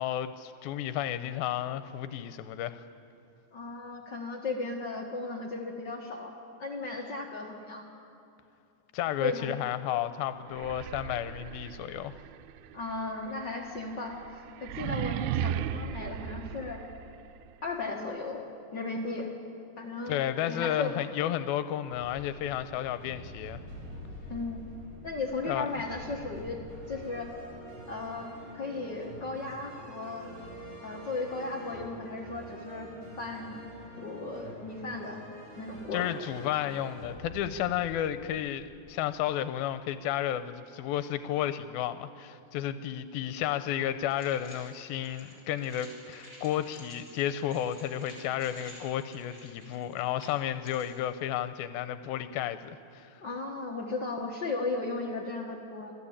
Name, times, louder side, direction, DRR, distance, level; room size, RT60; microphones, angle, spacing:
voice 1, 0.0-2.8 8.9-12.1 20.1-23.6 25.5-25.7 35.9-53.2, left 11 dB, 85° left, 11 dB, 2.5 m, -32 dB
voice 2, 3.5-6.3 6.6-7.9 9.2-9.5 12.7-14.2 14.6-16.8 17.6-18.4 18.7-19.3 19.8-20.2 20.5-21.1 24.3-24.7 25.0-26.6 26.9-27.3 27.9-28.3 28.5-30.3 30.8-33.6 34.0-35.2 35.6-36.1 53.2-55.9, left 3 dB, 55° left, 0 dB, 1.2 m, -36 dB
sound 1, 10.5-17.4, right 10 dB, 90° right, 2.5 m, -36 dB
sound 2, 21.9-39.5, equal, 65° right, 5.5 m, -46 dB
sound 3, 44.1-51.0, equal, 20° right, 5.0 m, -52 dB
26.5 x 15.0 x 8.7 m, 2.6 s
omnidirectional pair, 4.2 m